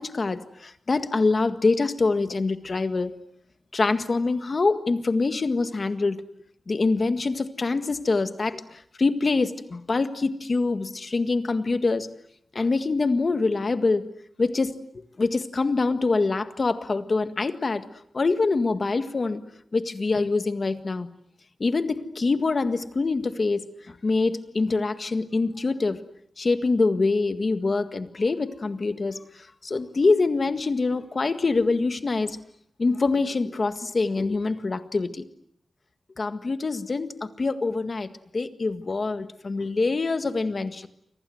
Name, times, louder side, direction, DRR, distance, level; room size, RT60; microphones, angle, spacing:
voice 1, 0.0-3.1 3.7-6.2 6.7-12.1 12.5-14.0 14.4-14.7 15.2-17.8 18.1-19.4 19.7-21.1 21.6-23.6 23.9-26.0 26.4-29.2 29.6-32.4 32.8-35.2 36.2-40.9, left 3 dB, 40° left, 9 dB, 1.8 m, -25 dB
29.5 x 25.5 x 7.9 m, 0.71 s
wide cardioid pair, 155°, 0 cm